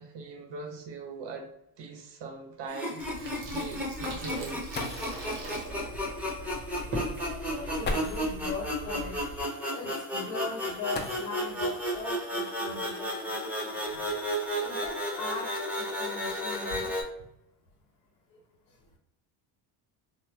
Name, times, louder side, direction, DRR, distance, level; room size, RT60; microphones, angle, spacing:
voice 1, 0.0-1.5 1.8-3.0 3.5-4.6, right 4 dB, 55° right, 3 dB, 0.9 m, -41 dB
sound 1, 0.8-0.9 1.3-1.4 2.0-2.1 4.4-4.5 4.7-5.3 6.6-6.7 7.8-8.4 10.9-11.6 13.0-13.1 13.8-15.3 16.0-16.4 16.7-17.1, left 4 dB, 25° left, 0.4 m, -40 dB
sound 2, 2.7-17.0, equal, 5° right, 0.8 m, -33 dB
Water tap faucet / Sink (filling or washing), 3.0-9.4, right 1 dB, 85° right, 1.0 m, -39 dB
voice 2, 6.7-9.2 9.7-14.1 14.6-17.0 18.3-18.4 18.7-18.9, left 3 dB, 75° left, -2 dB, 1.0 m, -40 dB
3.2 x 2.2 x 2.3 m, 0.81 s
supercardioid pair, 75°, 48 cm